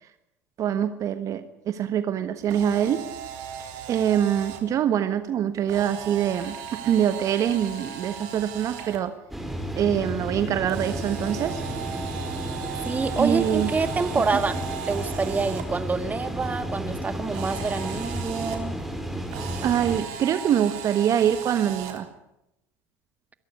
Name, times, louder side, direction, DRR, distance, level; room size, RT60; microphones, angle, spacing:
voice 1, 0.6-3.0 3.9-9.1 9.8-11.6 13.2-13.7 14.2-14.4 19.6-22.1, right 9 dB, 50° right, 11 dB, 1.3 m, -24 dB
Camera, 2.4-4.6 5.7-9.0 10.7-15.6 17.3-18.6 19.3-22.0, right 8 dB, 70° right, 3.7 m, -37 dB
sound 1, 9.3-20.0, equal, ahead, 5.1 m, -32 dB
voice 2, 12.9-14.6 14.9-18.8, right 4 dB, 20° right, 11 dB, 1.8 m, -27 dB
22.5 x 13.5 x 9.6 m, 0.87 s
hypercardioid pair, 80°, 7 cm